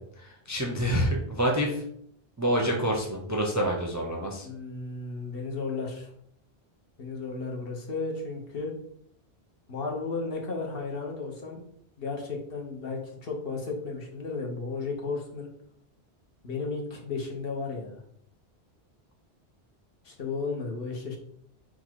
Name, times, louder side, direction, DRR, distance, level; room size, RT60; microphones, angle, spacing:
voice 1, 0.2-1.8 2.4-4.5, equal, 25° right, -1 dB, 0.4 m, -27 dB
voice 2, 4.4-6.1 7.0-8.7 9.7-11.6 12.0-15.5 16.4-18.0 20.0-21.2, left 4 dB, 65° left, 0 dB, 1.1 m, -34 dB
4.0 x 2.4 x 4.5 m, 0.69 s
omnidirectional pair, 1.1 m